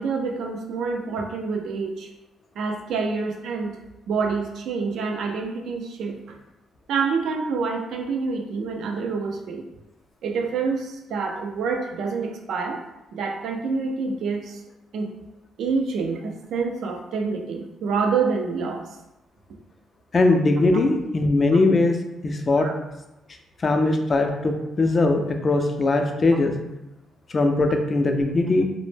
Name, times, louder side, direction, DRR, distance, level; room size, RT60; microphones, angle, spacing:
voice 1, 0.0-2.1 2.6-3.8 4.1-6.2 6.9-9.6 10.2-12.8 13.1-14.6 14.9-15.1 15.6-18.8 22.6-22.7, right 4 dB, 75° right, 2 dB, 0.4 m, -27 dB
voice 2, 20.1-22.0 22.2-22.7 23.6-26.5 27.3-28.6, left 2 dB, 35° left, 5 dB, 0.3 m, -20 dB
2.0 x 2.0 x 3.2 m, 0.95 s
cardioid pair, 90°, 0 cm